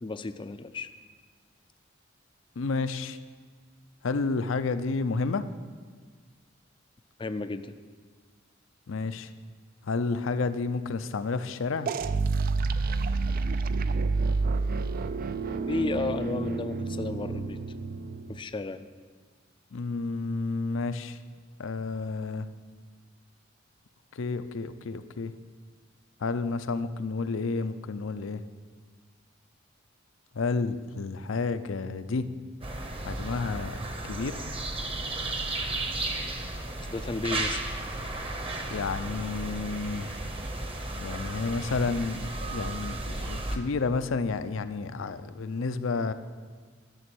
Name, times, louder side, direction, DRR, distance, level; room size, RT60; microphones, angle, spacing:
voice 1, 0.0-0.9 7.2-7.7 15.7-17.6 18.3-18.9 36.9-37.6, left 3 dB, 25° left, 11 dB, 0.4 m, -33 dB
voice 2, 2.6-3.2 4.0-5.5 8.9-9.3 9.8-11.9 19.7-21.2 21.6-22.5 24.1-25.3 26.2-28.4 30.3-32.3 33.0-33.8 34.0-34.4 38.7-40.1 41.0-46.1, left 4 dB, 75° left, 11 dB, 0.5 m, -30 dB
sound 1, 11.9-18.5, right 4 dB, 45° right, 0.4 m, -29 dB
sound 2, 32.6-43.6, right 2 dB, 30° right, 0.9 m, -34 dB
11.5 x 6.8 x 6.2 m, 1.5 s
head